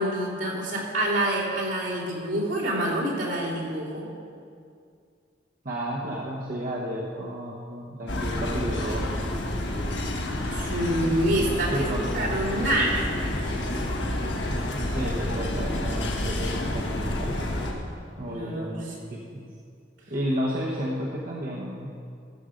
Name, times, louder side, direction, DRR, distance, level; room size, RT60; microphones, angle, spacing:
voice 1, 0.0-4.0 10.5-11.9 12.1-13.1 18.3-18.9, right 1 dB, 75° right, -6 dB, 3.1 m, -27 dB
voice 2, 5.6-9.4 11.7-12.1 14.8-17.5 17.8-19.5 20.1-21.9, equal, 50° right, -4 dB, 1.1 m, -32 dB
sound 1, 8.1-17.7, left 1 dB, 70° left, 1.4 m, -29 dB
14.0 x 7.1 x 5.2 m, 2.3 s
head